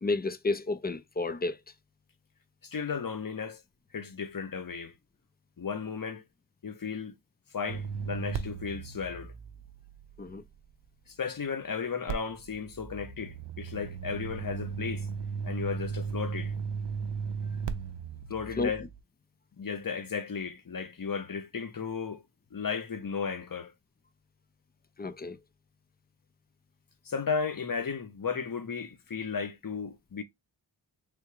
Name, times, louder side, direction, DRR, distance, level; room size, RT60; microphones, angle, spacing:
voice 1, 0.0-1.6 10.2-10.4 18.6-18.7 25.0-25.4, left 3 dB, 20° left, 0.4 m, -31 dB
voice 2, 2.6-3.6 3.9-4.9 5.6-6.2 6.6-7.2 7.5-9.3 11.1-15.1 15.4-16.5 18.3-18.8 19.6-22.2 22.5-23.7 27.0-30.2, left 6 dB, 45° left, 0.8 m, -34 dB
sound 1, 7.7-10.8 12.1-19.0, right 6 dB, 65° right, 0.6 m, -36 dB
3.5 x 2.3 x 3.0 m
cardioid pair, 40°, 47 cm